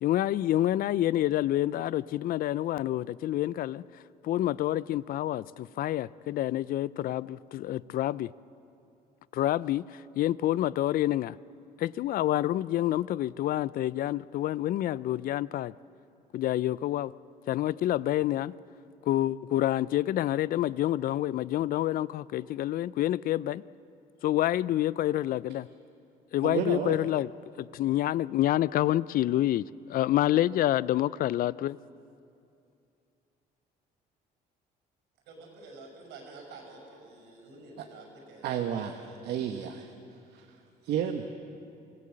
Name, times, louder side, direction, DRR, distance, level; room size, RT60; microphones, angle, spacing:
voice 1, 0.0-3.8 4.2-8.3 9.3-11.4 11.8-15.7 16.3-17.1 17.5-18.5 19.1-23.6 24.2-25.7 26.3-27.3 27.6-29.6 29.9-31.8, left 13 dB, 60° left, 20 dB, 0.4 m, -28 dB
voice 2, 26.4-26.9 37.8-37.9 38.4-39.9 40.3-40.5 40.8-41.2, right 9 dB, 75° right, 5 dB, 1.2 m, -31 dB
voice 3, 35.2-39.2, right 3 dB, 90° right, 2 dB, 5.9 m, -49 dB
24.5 x 16.5 x 7.6 m, 2.6 s
cardioid pair, 110°, 17 cm